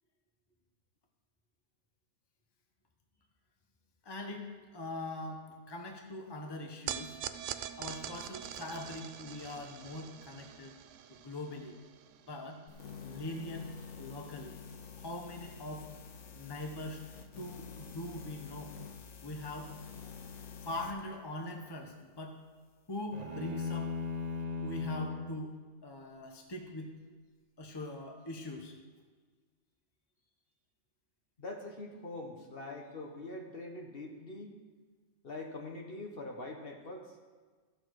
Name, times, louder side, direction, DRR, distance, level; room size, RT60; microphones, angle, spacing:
voice 1, 4.0-7.2 7.8-10.8 11.1-11.8 12.3-12.6 13.0-13.7 14.0-14.6 15.0-15.9 16.3-17.0 17.4-18.7 19.2-19.7 20.0-22.4 22.9-23.9 24.6-25.6 25.8-26.9 27.6-28.7, left 1 dB, 20° left, 2 dB, 1.0 m, -42 dB
sound 1, 6.9-13.3, right 10 dB, 75° right, 0.9 m, -44 dB
sound 2, 12.7-20.9, left 5 dB, 70° left, 1.2 m, -48 dB
sound 3, 23.1-25.4, left 4 dB, 35° right, 0.9 m, -37 dB
voice 2, 31.4-34.6 35.2-37.2, left 2 dB, 50° left, 2 dB, 1.3 m, -43 dB
14.0 x 6.7 x 4.7 m, 1.5 s
omnidirectional pair, 1.3 m